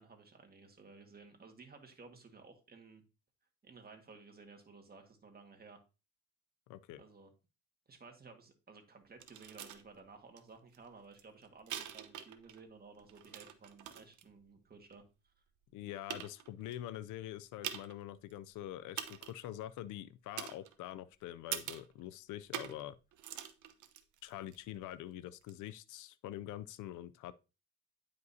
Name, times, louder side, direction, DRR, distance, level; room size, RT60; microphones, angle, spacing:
voice 1, 0.0-3.0 3.6-5.8 7.0-7.3 7.9-15.3, right 4 dB, 30° right, 1.8 m, -56 dB
voice 2, 6.7-7.0 15.7-23.0 24.2-27.3, left 13 dB, 90° left, 0.5 m, -45 dB
sound 1, 9.2-9.8 10.4-10.5 10.7-12.6 12.9-14.2 14.9-15.0 15.6-15.7 16.1-16.7 17.6-18.0 18.3-18.4 19.0-19.5 20.4-21.0 21.5-21.9 22.5-22.9 23.1-24.6 25.4-25.5, right 10 dB, 75° right, 0.9 m, -44 dB
9.3 x 5.2 x 2.7 m
cardioid pair, 90°, 30 cm